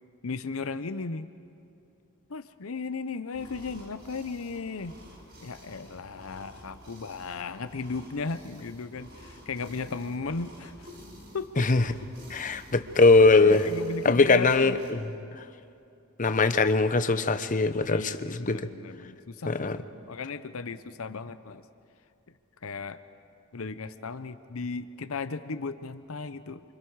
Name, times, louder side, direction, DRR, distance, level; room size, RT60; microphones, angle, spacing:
voice 1, 0.2-1.3 2.3-5.0 5.4-10.9 11.3-11.7 13.4-14.8 17.9-21.6 22.6-23.0 23.5-26.6, left 4 dB, 75° left, 11 dB, 0.8 m, -36 dB
sound 1, 3.3-14.9, equal, 50° right, 4.3 m, -50 dB
voice 2, 12.3-13.7 14.0-15.0 16.2-18.7 19.5-19.8, left 3 dB, 40° left, 10 dB, 0.9 m, -21 dB
29.0 x 25.0 x 4.8 m, 2.6 s
head